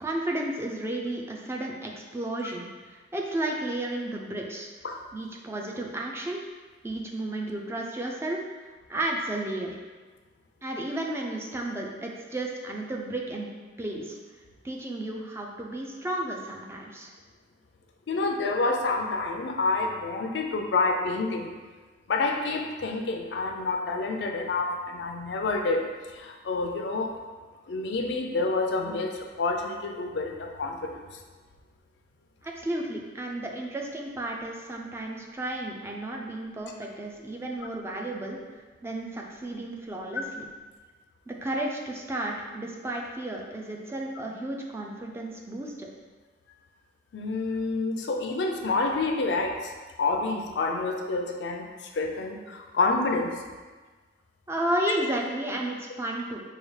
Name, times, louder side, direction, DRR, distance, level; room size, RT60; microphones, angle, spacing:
voice 1, 0.0-4.7 5.1-6.4 6.8-9.8 10.6-13.5 13.8-14.2 14.6-17.1 32.4-38.4 38.8-40.4 41.3-45.9 54.5-56.4, right 1 dB, 15° right, -1 dB, 0.4 m, -33 dB
voice 2, 18.1-21.5 22.1-25.8 26.1-27.1 27.7-31.0 47.1-49.7 50.0-51.7 51.9-53.4, left 3 dB, 75° left, 3 dB, 0.4 m, -28 dB
4.7 x 2.3 x 3.1 m, 1.4 s
head